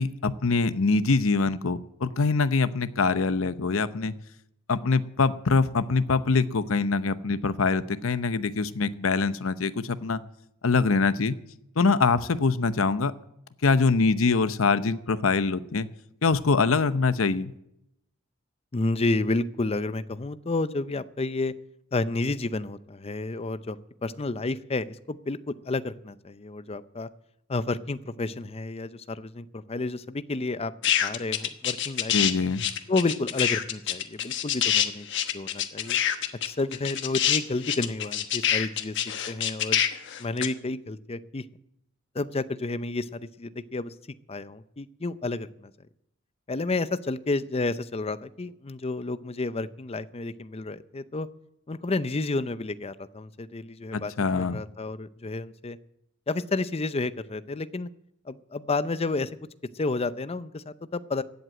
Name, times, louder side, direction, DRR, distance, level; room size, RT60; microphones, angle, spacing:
voice 1, 0.0-4.1 4.7-10.2 10.6-11.4 11.8-13.1 13.6-15.9 16.2-17.5 32.1-32.7 53.9-54.6, left 4 dB, 80° left, 13 dB, 0.8 m, -24 dB
voice 2, 18.7-21.5 21.9-27.1 27.5-30.7 31.0-32.4 32.9-35.1 35.3-36.0 36.4-39.0 39.3-39.8 40.2-41.4 42.1-43.9 44.3-45.7 46.5-51.3 51.7-54.1 54.4-55.8 56.3-57.9 58.3-59.3 59.7-61.2, left 3 dB, 30° left, 14 dB, 0.6 m, -30 dB
sound 1, 30.8-32.3 32.6-40.5, left 10 dB, 60° left, 1.2 m, -25 dB
15.5 x 8.0 x 8.9 m, 0.80 s
head